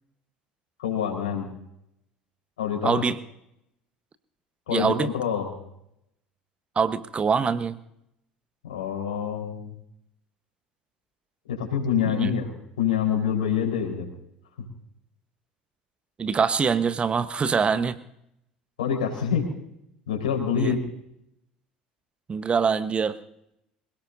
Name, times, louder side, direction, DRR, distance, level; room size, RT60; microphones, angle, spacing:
voice 1, 0.8-1.5 2.6-3.0 4.7-5.5 8.6-9.7 11.5-12.5 12.8-14.1 18.8-19.4 20.1-20.8, left 8 dB, 65° left, 0 dB, 4.5 m, -26 dB
voice 2, 2.8-3.2 4.7-5.1 6.7-7.8 12.0-12.3 16.2-18.0 20.5-20.7 22.3-23.1, right 6 dB, 25° right, 12 dB, 1.2 m, -24 dB
26.0 x 17.5 x 2.7 m, 0.78 s
figure-of-eight pair, 65°, 4 cm